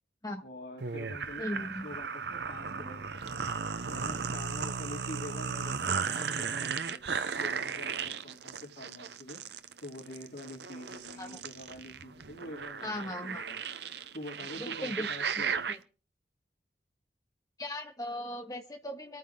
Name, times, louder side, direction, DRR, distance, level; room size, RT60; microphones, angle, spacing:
voice 1, 0.4-3.4 3.8-9.4 9.8-13.6 14.1-15.7, left 1 dB, 85° left, -3 dB, 3.4 m, -46 dB
sound 1, 0.8-15.8, right 6 dB, 70° right, 0.7 m, -36 dB
voice 2, 1.4-1.9 11.2-11.3 12.8-13.4 14.6-15.1 15.5-15.8 17.6-19.2, left 1 dB, 20° left, 4 dB, 1.5 m, -38 dB
24.5 x 9.3 x 3.7 m, 0.36 s
head